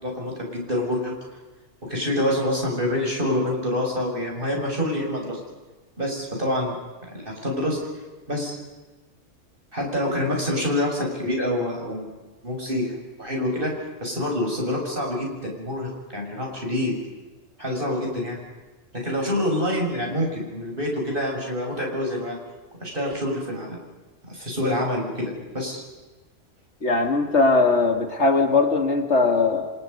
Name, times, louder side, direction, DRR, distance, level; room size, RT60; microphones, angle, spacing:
voice 1, 0.0-1.1 1.9-5.4 6.0-6.7 7.1-7.8 8.3-8.5 9.7-12.1 12.4-16.9 17.6-18.4 19.0-22.4 22.8-23.8 24.2-25.8, left 1 dB, 40° right, 0 dB, 6.6 m, -26 dB
voice 2, 26.8-29.7, left 3 dB, 60° left, 5 dB, 2.4 m, -20 dB
28.5 x 26.5 x 5.4 m, 1.2 s
omnidirectional pair, 1.3 m